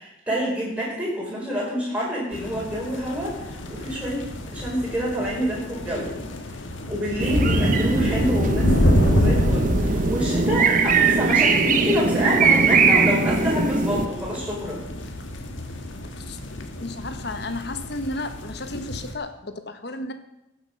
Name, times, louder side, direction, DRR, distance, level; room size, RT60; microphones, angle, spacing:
voice 1, 0.0-6.1 6.9-14.8, equal, 5° right, -5 dB, 4.8 m, -27 dB
sound 1, 2.3-19.1, left 1 dB, 70° left, 1.6 m, -27 dB
sound 2, 7.2-14.1, right 4 dB, 40° right, 0.8 m, -21 dB
voice 2, 16.8-20.1, left 2 dB, 55° left, 8 dB, 1.1 m, -33 dB
15.5 x 7.4 x 6.5 m, 0.87 s
head